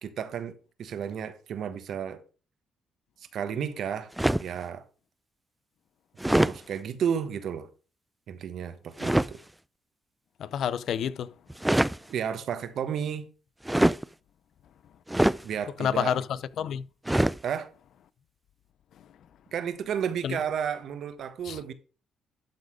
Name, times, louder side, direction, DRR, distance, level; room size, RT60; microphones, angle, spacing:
voice 1, 0.0-2.2 3.3-4.1 4.4-4.8 6.3-7.7 8.3-9.4 12.1-13.3 15.4-16.2 17.4-17.7 19.5-21.7, right 8 dB, 70° right, 1.1 m, -32 dB
sound 1, 4.2-4.6 6.2-6.6 9.0-9.3 11.5-12.0 13.6-14.0 15.1-15.4 17.1-17.4, right 1 dB, 10° right, 0.3 m, -23 dB
voice 2, 10.4-11.3 15.8-16.9 20.2-20.4 21.4-21.6, left 9 dB, 70° left, 0.5 m, -29 dB
12.0 x 4.1 x 4.9 m
cardioid pair, 90°, 0 cm